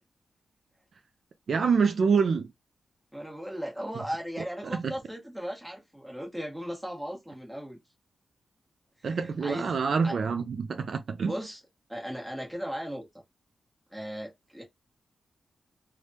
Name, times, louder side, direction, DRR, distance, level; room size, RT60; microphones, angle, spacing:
voice 1, 1.5-2.5 4.6-4.8 9.0-11.3, right 5 dB, 60° right, 0.4 m, -26 dB
voice 2, 3.1-7.8 9.1-9.7 10.0-10.2 11.2-11.6 11.9-13.1 13.9-14.6, equal, 5° right, 1.2 m, -37 dB
3.3 x 2.2 x 2.7 m
wide cardioid pair, 125°, 0 cm